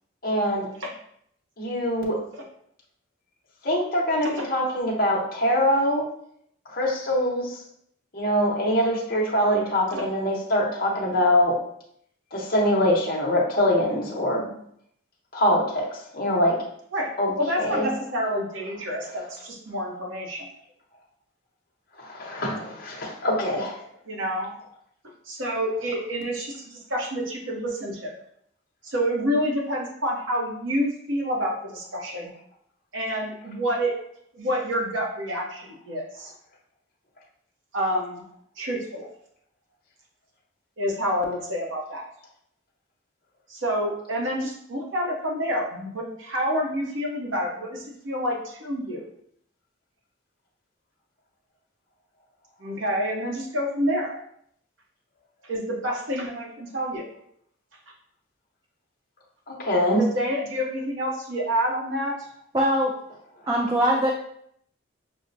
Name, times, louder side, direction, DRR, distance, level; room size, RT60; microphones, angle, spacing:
voice 1, 0.2-0.7 1.6-2.2 3.6-6.0 6.7-7.6 8.1-11.6 12.3-14.5 15.3-15.9 16.1-16.6 17.2-17.9 19.0-19.3 22.0-23.8 59.5-60.1 63.7-63.8, equal, 45° left, -3 dB, 0.8 m, -23 dB
voice 2, 16.9-20.5 24.1-24.5 25.3-28.2 28.8-32.3 32.9-34.0 34.3-36.3 37.7-38.2 38.6-39.1 40.8-42.1 43.5-49.0 52.6-54.1 55.4-57.1 59.9-62.3, equal, 70° right, 0 dB, 0.8 m, -28 dB
voice 3, 62.5-62.9 63.5-64.1, equal, 20° right, -2 dB, 0.3 m, -21 dB
6.0 x 2.1 x 2.6 m, 0.68 s
head